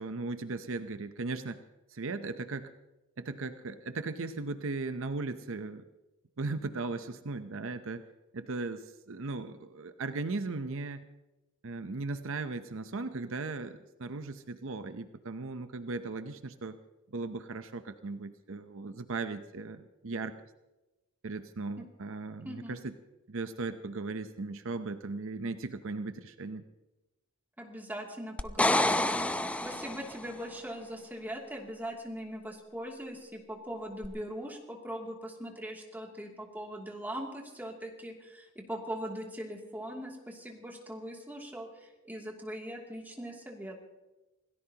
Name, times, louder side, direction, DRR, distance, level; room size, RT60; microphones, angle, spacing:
voice 1, 0.0-1.6 1.9-2.7 3.2-5.8 6.4-8.1 8.3-11.1 11.6-16.8 17.1-20.4 21.2-22.9 23.3-26.6, right 3 dB, 65° right, 9 dB, 0.7 m, -37 dB
voice 2, 22.4-22.8 27.6-43.8, equal, 10° right, 0 dB, 2.6 m, -41 dB
sound 1, 28.4-30.3 34.0-34.1, left 1 dB, 5° left, 0.6 m, -28 dB
27.0 x 17.5 x 2.9 m, 1.1 s
head